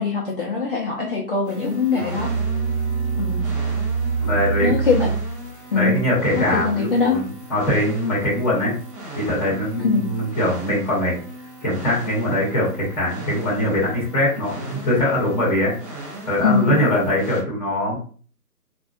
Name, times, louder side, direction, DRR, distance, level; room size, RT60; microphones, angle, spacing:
voice 1, 0.0-2.3 3.2-3.4 4.6-5.1 5.7-6.0 6.3-7.2 9.8-10.1 16.4-16.8, left 4 dB, 35° left, -3 dB, 0.9 m, -22 dB
sound 1, 1.4-17.4, right 1 dB, 20° right, 1.5 m, -38 dB
Musical instrument, 1.9-5.5, right 5 dB, 40° right, 0.8 m, -24 dB
voice 2, 4.2-4.7 5.7-8.7 9.1-11.2 11.6-18.0, left 1 dB, 5° left, -7 dB, 1.4 m, -22 dB
5.0 x 3.7 x 2.6 m, 0.41 s
figure-of-eight pair, 150°, 48 cm